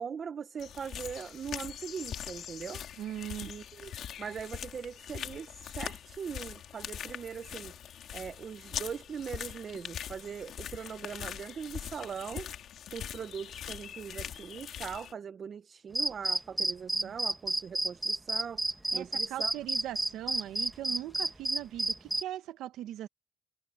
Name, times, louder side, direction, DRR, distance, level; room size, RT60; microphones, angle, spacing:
voice 1, 0.0-2.8 3.4-3.9 4.2-7.7 8.1-12.5 12.9-18.6 18.9-19.5, right 7 dB, 55° right, 1.2 m, -41 dB
sound 1, 0.6-15.1, left 10 dB, 75° left, 2.2 m, -42 dB
voice 2, 3.0-3.5 16.9-17.1 18.9-23.1, right 12 dB, 90° right, 1.2 m, -40 dB
sound 2, 15.9-22.2, right 2 dB, 15° right, 1.7 m, -30 dB
cardioid pair, 70°, 0 cm